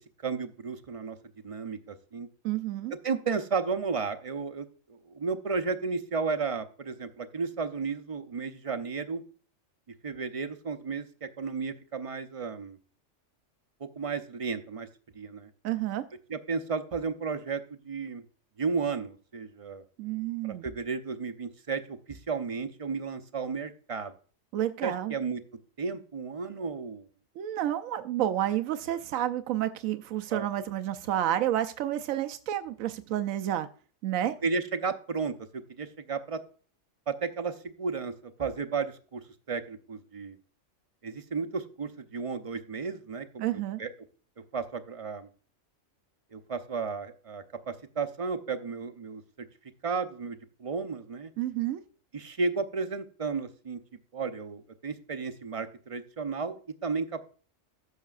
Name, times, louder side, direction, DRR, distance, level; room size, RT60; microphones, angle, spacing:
voice 1, 0.2-1.2 1.4-2.3 2.9-9.2 10.0-12.8 13.8-14.9 15.1-15.5 16.3-18.2 18.6-19.8 20.4-24.1 24.8-25.4 25.8-27.1 30.3-30.5 34.4-36.4 37.1-38.1 38.4-40.4 41.0-43.9 44.5-45.3 46.3-49.2 49.8-51.3 52.1-53.8 54.1-57.2, right 5 dB, 40° right, 9 dB, 0.5 m, -33 dB
voice 2, 2.4-2.9 15.6-16.0 20.0-20.7 24.5-25.1 27.4-33.7 34.0-34.3 43.4-43.8 51.4-51.8, right 12 dB, 85° right, 9 dB, 1.0 m, -30 dB
14.5 x 6.5 x 2.4 m, 0.39 s
omnidirectional pair, 1.4 m